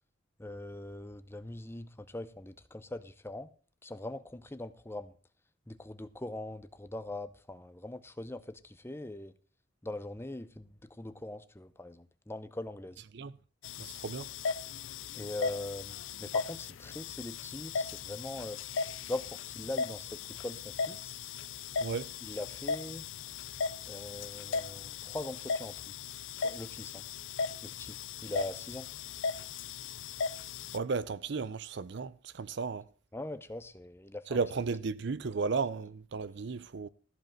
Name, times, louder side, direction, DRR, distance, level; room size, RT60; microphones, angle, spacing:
voice 1, 0.4-3.5 3.8-5.1 5.7-9.3 9.8-13.0 15.1-18.6 19.0-21.1 22.2-23.1 23.9-25.7 26.3-27.0 27.6-28.0 28.2-28.9 33.1-34.4, left 2 dB, 10° left, 0.7 m, -41 dB
sound 1, 13.6-30.8, left 5 dB, 75° left, 0.5 m, -37 dB
voice 2, 13.8-14.3 21.8-22.1 30.7-32.9 34.3-36.9, right 4 dB, 60° right, 0.5 m, -34 dB
14.0 x 5.3 x 7.4 m
head